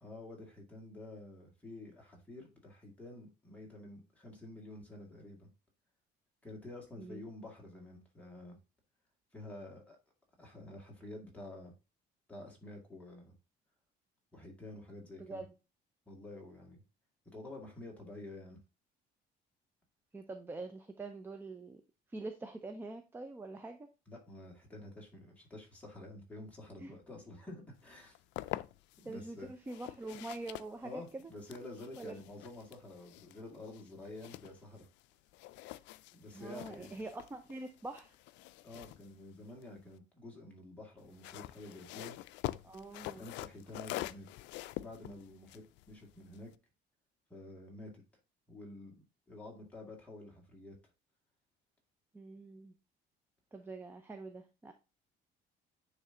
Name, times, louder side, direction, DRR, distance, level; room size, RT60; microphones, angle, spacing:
voice 1, 0.0-5.5 6.4-8.6 9.3-10.0 10.4-11.7 12.3-13.4 14.3-15.4 16.1-16.8 17.3-18.6 24.1-28.2 29.0-29.5 30.8-34.9 36.1-36.9 38.6-42.2 43.1-44.3 44.8-46.5 47.3-47.9 48.5-49.0 49.3-50.8, left 2 dB, 5° left, -1 dB, 2.2 m, -49 dB
voice 2, 15.2-15.5 20.1-21.8 22.1-23.9 26.8-26.9 29.0-31.3 32.0-32.2 36.3-38.2 42.6-43.2 52.1-52.7 53.5-54.7, right 2 dB, 10° right, 6 dB, 0.5 m, -45 dB
sound 1, 27.9-29.1 29.6-35.1 35.3-40.0 41.0-46.5, left 17 dB, 80° left, 0.4 m, -46 dB
9.5 x 3.2 x 3.8 m, 0.30 s
cardioid pair, 155°, 19 cm